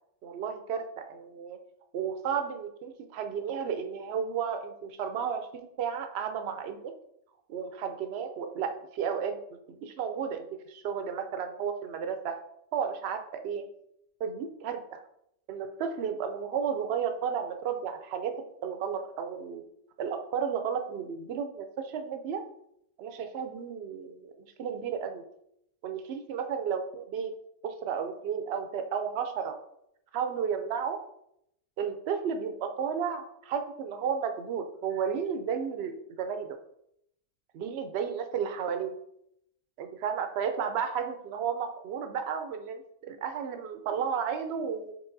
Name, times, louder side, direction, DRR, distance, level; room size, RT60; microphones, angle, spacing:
voice 1, 0.2-1.6 1.9-6.9 7.5-9.4 9.7-12.4 12.7-13.6 14.2-15.0 15.5-19.6 20.0-22.4 23.0-25.2 25.8-27.3 27.6-29.6 30.1-31.0 31.8-36.6 37.5-38.9 39.8-44.9, right 7 dB, 65° right, 7 dB, 0.7 m, -33 dB
4.7 x 4.0 x 2.6 m, 0.76 s
omnidirectional pair, 1.4 m